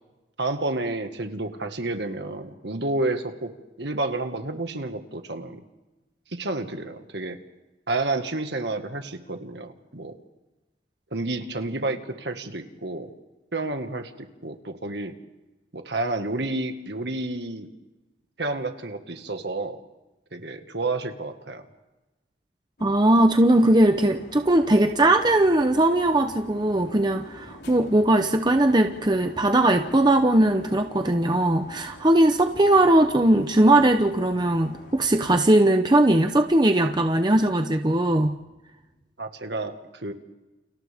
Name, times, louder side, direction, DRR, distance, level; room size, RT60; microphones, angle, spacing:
voice 1, 0.4-3.5 3.8-5.6 6.3-7.4 7.9-10.1 11.1-13.1 13.5-15.2 15.7-17.7 18.4-19.8 20.3-21.6 39.2-40.1, right 2 dB, 65° right, 6 dB, 1.8 m, -30 dB
sound 1, 22.8-35.4, equal, 60° left, 4.6 m, -46 dB
voice 2, 22.8-38.4, right 1 dB, 25° right, 6 dB, 0.8 m, -19 dB
30.0 x 29.5 x 3.6 m, 1.1 s
head